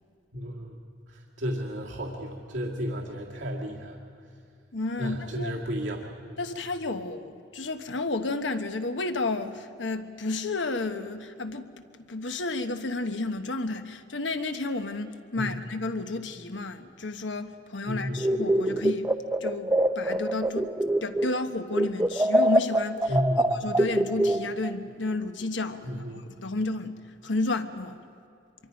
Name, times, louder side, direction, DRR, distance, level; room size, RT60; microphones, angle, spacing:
voice 1, 0.3-0.7 1.4-4.0 5.0-6.0 15.3-15.5 17.8-18.2 23.1-23.5 25.8-26.3, equal, 85° right, 2.0 m, -32 dB
voice 2, 4.7-5.6 6.4-19.1 19.4-20.7 21.0-23.2 23.6-26.9 27.2-28.0, left 2 dB, 80° left, 1.2 m, -32 dB
sound 1, 18.2-21.4 21.7-24.8, right 1 dB, 10° right, 0.5 m, -24 dB
25.5 x 23.5 x 5.2 m
head